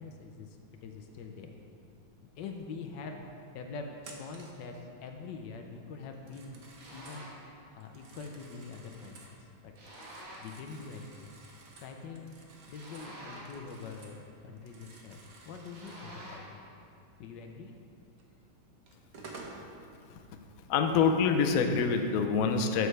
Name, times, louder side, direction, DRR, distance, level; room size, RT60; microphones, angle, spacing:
voice 1, 0.0-1.6 2.4-3.2 3.5-6.6 6.9-7.3 7.7-9.7 10.4-11.3 11.8-12.3 12.7-16.6 17.2-17.8, left 4 dB, 70° left, 3 dB, 1.2 m, -44 dB
Telephone, 4.0-4.6 6.1-7.3 7.8-9.4 9.8-14.2 14.5-16.1 18.2-18.3 18.9-19.6, right 3 dB, 55° right, 1.2 m, -52 dB
sound 1, 6.8-7.5 9.8-10.6 12.7-13.7 15.7-16.6, right 1 dB, 70° right, 2.5 m, -48 dB
voice 2, 20.7-22.9, left 5 dB, 85° left, 5 dB, 0.7 m, -26 dB
12.5 x 6.6 x 3.3 m, 2.5 s
omnidirectional pair, 2.2 m